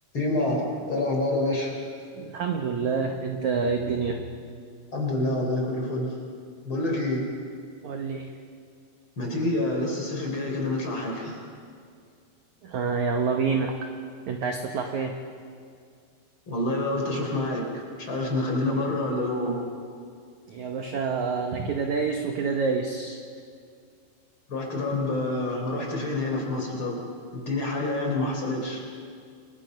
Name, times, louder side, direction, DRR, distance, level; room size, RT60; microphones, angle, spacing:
voice 1, 0.1-1.8 4.9-6.1 6.6-7.3 9.2-11.4 16.5-19.6 24.5-27.0 27.3-28.8, left 2 dB, 30° left, 0 dB, 4.2 m, -27 dB
voice 2, 2.1-4.2 7.8-8.3 12.6-13.9 14.3-15.2 20.5-23.2, right 5 dB, 70° right, 3 dB, 1.8 m, -27 dB
28.0 x 22.5 x 5.3 m, 2.2 s
omnidirectional pair, 5.1 m